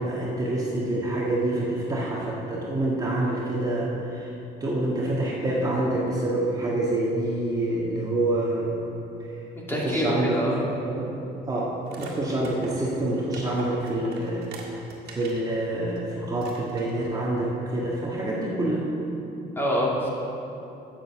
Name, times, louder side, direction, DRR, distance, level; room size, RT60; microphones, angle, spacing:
voice 1, 0.0-4.3 4.6-8.8 9.3-9.4 9.7-11.1 11.5-18.9, right 1 dB, 20° right, -5 dB, 1.6 m, -27 dB
voice 2, 9.7-10.6 19.6-20.1, equal, 15° left, -4 dB, 2.3 m, -25 dB
sound 1, 11.9-15.5 15.9-16.0 16.4-17.1, right 3 dB, 65° right, 1.9 m, -42 dB
7.9 x 7.5 x 7.2 m, 2.8 s
cardioid pair, 110°, 17 cm